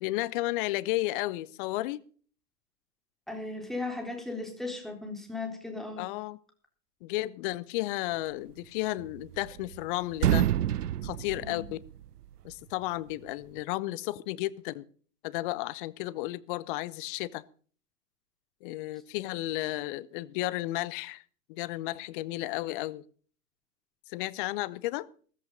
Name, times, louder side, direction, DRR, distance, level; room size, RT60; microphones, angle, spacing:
voice 1, 0.0-2.0 6.0-6.4 7.0-10.5 11.0-11.8 12.4-14.8 15.2-17.4 18.6-21.2 21.5-23.0 24.1-25.1, left 18 dB, 35° left, 0.8 m, -33 dB
voice 2, 3.3-6.1 11.4-11.6, left 3 dB, ahead, 3.8 m, -36 dB
sound 1, 9.0-9.8 10.1-12.2, right 11 dB, 75° right, 0.7 m, -28 dB
14.5 x 14.5 x 3.9 m
figure-of-eight pair, 110°, 47 cm